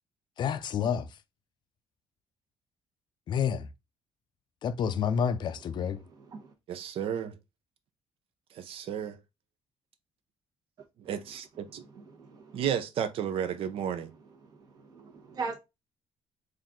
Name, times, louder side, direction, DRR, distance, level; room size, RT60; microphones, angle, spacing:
voice 1, 0.4-1.1 3.3-3.7 4.6-6.0, left 7 dB, 45° left, 0.5 m, -29 dB
voice 2, 5.8-6.5 11.7-12.6 14.4-15.6, right 4 dB, 35° right, 1.2 m, -42 dB
voice 3, 6.7-7.4 8.5-9.2 11.0-11.8 12.5-14.1, right 9 dB, 60° right, 0.7 m, -33 dB
4.3 x 2.6 x 3.6 m
cardioid pair, 145°, 11 cm